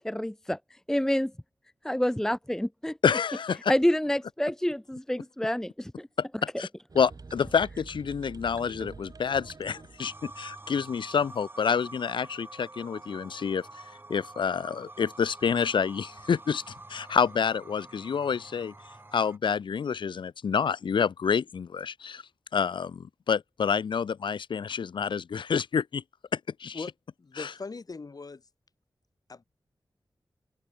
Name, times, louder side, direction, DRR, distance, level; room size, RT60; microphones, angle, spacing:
voice 1, 0.0-0.6 0.9-1.3 1.8-3.0 3.7-6.1, equal, 5° left, 0.7 m, -27 dB
voice 2, 3.0-3.7 6.2-6.3 6.6-6.7 6.9-13.7 14.1-16.6 16.9-18.7 19.1-22.2 22.5-26.0 26.3-26.8 27.4-27.5, left 6 dB, 85° left, 0.7 m, -28 dB
sound 1, 6.9-10.8, right 4 dB, 50° right, 7.2 m, -47 dB
sound 2, 10.0-19.4, right 2 dB, 25° right, 5.8 m, -47 dB
voice 3, 27.2-28.4 29.3-29.4, left 4 dB, 50° left, 5.9 m, -40 dB
open air
wide cardioid pair, 95°, 8 cm